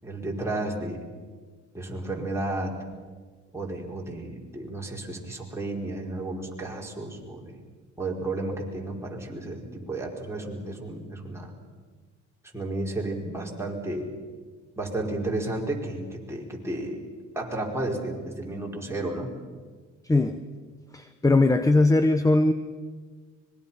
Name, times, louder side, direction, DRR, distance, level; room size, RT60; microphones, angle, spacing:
voice 1, 0.0-1.0 1.7-2.8 3.5-7.6 8.0-11.5 12.5-14.1 14.8-17.0 17.3-19.4, right 2 dB, 10° right, -2 dB, 4.8 m, -32 dB
voice 2, 20.0-20.4 20.9-22.5, left 2 dB, 10° left, 10 dB, 1.0 m, -20 dB
25.0 x 21.5 x 5.7 m, 1.5 s
cardioid pair, 90°, 30 cm